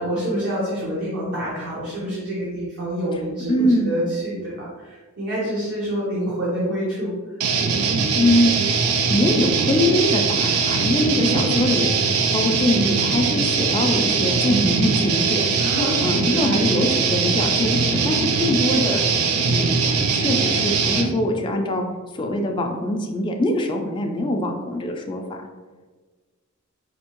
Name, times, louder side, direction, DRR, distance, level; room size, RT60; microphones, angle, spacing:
voice 1, 0.0-7.1 11.2-11.6 15.6-17.0, equal, 55° right, -7 dB, 0.9 m, -27 dB
voice 2, 3.5-4.0 8.1-8.6 9.1-11.9 12.3-15.5 16.0-19.0 19.5-19.8 20.1-21.8 22.1-25.4, left 1 dB, 20° left, 2 dB, 0.3 m, -23 dB
sound 1, 7.4-21.1, right 5 dB, 85° right, 0.4 m, -21 dB
4.3 x 2.7 x 2.9 m, 1.3 s
head